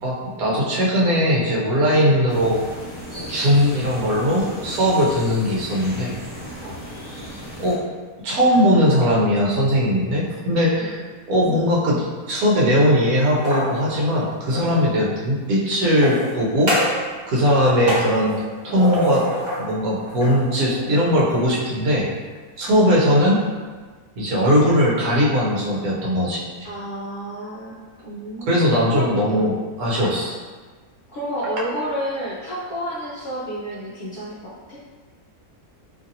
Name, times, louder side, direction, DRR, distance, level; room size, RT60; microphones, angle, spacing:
voice 1, 0.0-2.6 3.2-6.2 7.6-7.8 8.2-11.0 11.3-16.8 17.3-18.3 18.6-19.3 19.6-22.1 22.6-23.4 24.2-26.7 28.5-30.4, equal, 80° right, -5 dB, 1.2 m, -19 dB
sound 1, 2.3-7.7, equal, 10° right, 0.6 m, -36 dB
sound 2, 13.2-14.7 15.8-17.1 17.4-19.7 20.1-21.4, equal, 30° right, 1.0 m, -27 dB
voice 2, 26.6-27.8 28.0-29.5 31.1-34.8, equal, 70° left, -9 dB, 0.5 m, -30 dB
2.8 x 2.5 x 2.6 m, 1.4 s
omnidirectional pair, 1.6 m